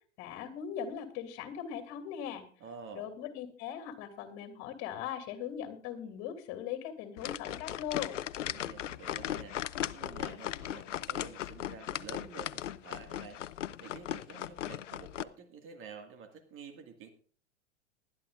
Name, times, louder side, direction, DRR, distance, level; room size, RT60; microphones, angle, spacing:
voice 1, 0.2-2.4 2.9-8.2, left 9 dB, 45° left, 7 dB, 2.8 m, -40 dB
voice 2, 2.6-3.1 8.5-9.6 9.9-17.1, right 5 dB, 35° right, 5 dB, 2.0 m, -49 dB
sound 1, 7.2-15.2, left 12 dB, 80° left, 0.6 m, -38 dB
20.0 x 11.5 x 2.5 m, 0.43 s
hypercardioid pair, 100°, 37 cm